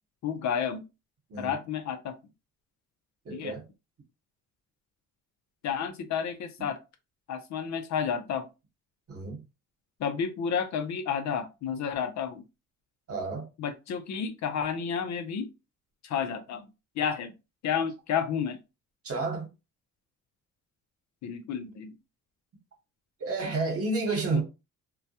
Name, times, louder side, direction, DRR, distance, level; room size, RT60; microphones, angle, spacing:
voice 1, 0.2-0.8 1.4-2.1 3.3-3.6 5.6-6.8 7.3-8.5 10.0-12.4 13.6-15.5 16.0-16.6 17.0-17.3 17.6-18.6 21.2-21.9 24.3-24.4, left 7 dB, 65° left, 0.6 m, -31 dB
voice 2, 3.3-3.6 9.1-9.4 13.1-13.5 19.0-19.5 23.2-24.4, right 3 dB, 50° right, 1.1 m, -30 dB
2.2 x 2.1 x 2.7 m
cardioid pair, 90°, 30 cm